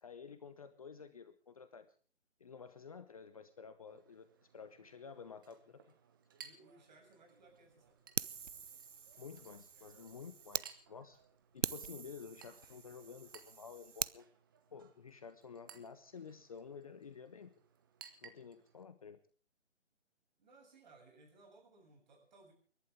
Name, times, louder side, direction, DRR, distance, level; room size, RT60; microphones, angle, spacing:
voice 1, 0.0-1.9 2.4-4.3 4.5-5.8 9.2-11.2 11.5-14.3 14.7-17.5 18.2-19.2, left 6 dB, 30° left, 11 dB, 0.9 m, -51 dB
Chink clink, 3.9-18.8, right 7 dB, 20° right, 0.9 m, -61 dB
voice 2, 6.4-8.0 20.4-22.5, right 3 dB, 40° right, 1 dB, 7.0 m, -62 dB
Fire, 8.2-10.7 11.1-11.2 11.6-14.2, right 6 dB, 80° right, 0.7 m, -43 dB
29.5 x 11.5 x 3.6 m, 0.42 s
figure-of-eight pair, 150°, 36 cm